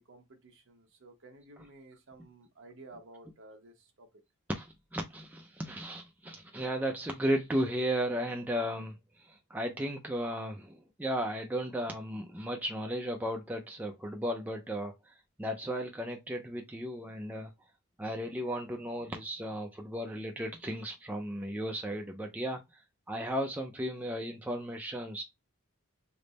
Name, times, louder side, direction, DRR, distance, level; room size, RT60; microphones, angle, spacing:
voice 1, 0.0-4.2, right 2 dB, 55° right, 0.8 m, -54 dB
voice 2, 4.5-17.5 18.0-22.8 23.1-25.2, equal, 5° right, 0.3 m, -35 dB
3.4 x 2.0 x 3.9 m
head